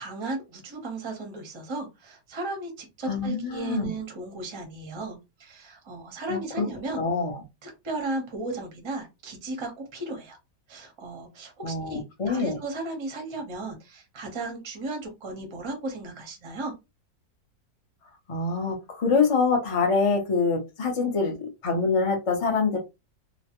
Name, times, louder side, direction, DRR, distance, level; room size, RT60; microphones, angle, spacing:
voice 1, 0.0-7.0 7.6-10.4 10.7-16.7, right 2 dB, 30° right, 2 dB, 0.5 m, -35 dB
voice 2, 3.1-3.9 6.3-6.7 7.0-7.4 11.6-12.6 18.3-22.8, left 4 dB, 55° left, 2 dB, 0.3 m, -25 dB
3.0 x 2.1 x 2.9 m, 0.24 s
omnidirectional pair, 1.9 m